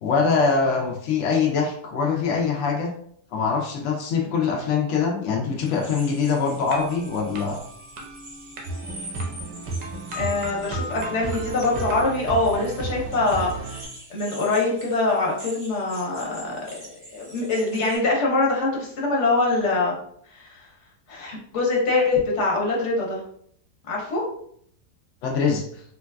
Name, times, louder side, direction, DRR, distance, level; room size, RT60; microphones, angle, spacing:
voice 1, 0.0-2.9 3.3-7.6 25.2-25.8, left 5 dB, 75° left, 0 dB, 0.6 m, -23 dB
sound 1, 5.6-18.0, right 1 dB, 35° right, 0.7 m, -44 dB
sound 2, 6.6-12.1, equal, 60° right, 0.9 m, -38 dB
sound 3, 8.7-13.9, right 3 dB, 80° right, 1.5 m, -32 dB
voice 2, 10.1-13.5 14.1-16.6 16.9-20.0 20.3-20.6 21.1-23.2 23.9-24.2, left 3 dB, 50° left, -3 dB, 1.0 m, -24 dB
3.8 x 2.3 x 2.2 m, 0.65 s
omnidirectional pair, 1.8 m